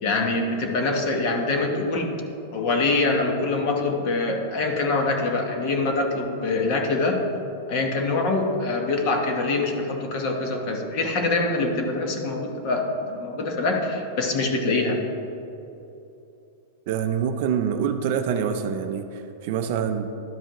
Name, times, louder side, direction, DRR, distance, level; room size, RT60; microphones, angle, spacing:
voice 1, 0.0-2.1 2.5-7.2 7.7-15.0, left 3 dB, 35° left, 2 dB, 1.0 m, -24 dB
voice 2, 16.9-20.0, right 7 dB, 40° right, 7 dB, 0.4 m, -26 dB
12.5 x 4.9 x 3.0 m, 2.8 s
supercardioid pair, 175°, 0 cm